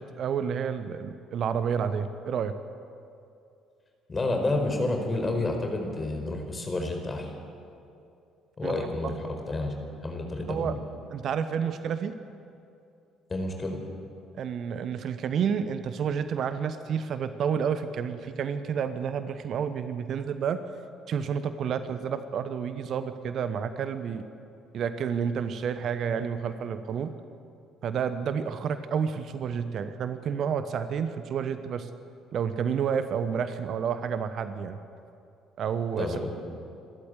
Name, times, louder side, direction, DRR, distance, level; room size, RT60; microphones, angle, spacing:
voice 1, 0.0-2.5 8.6-9.1 10.5-10.8 11.1-12.1 14.4-20.6 21.1-24.3 24.7-27.1 27.8-31.9 32.3-34.8 35.6-36.3, right 7 dB, 55° right, 11 dB, 1.1 m, -30 dB
voice 2, 4.1-7.3 8.6-9.7 10.0-10.7 13.3-13.8 36.0-36.3, left 2 dB, 30° left, 3 dB, 4.7 m, -29 dB
28.0 x 13.0 x 8.3 m, 2.5 s
figure-of-eight pair, 50°, 0 cm